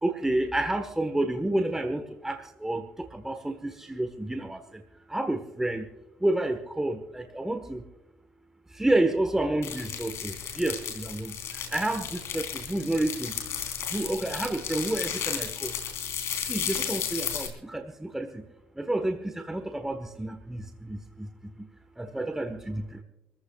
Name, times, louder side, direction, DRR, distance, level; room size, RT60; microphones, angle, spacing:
voice 1, 0.0-4.8 5.1-5.9 6.2-7.8 8.7-13.3 13.9-15.8 16.4-18.4 18.7-21.7 22.0-23.0, right 1 dB, 10° right, 6 dB, 1.2 m, -30 dB
sound 1, 9.6-17.5, left 8 dB, 70° left, 3.6 m, -34 dB
27.5 x 14.5 x 2.3 m, 0.99 s
cardioid pair, 80°, 5 cm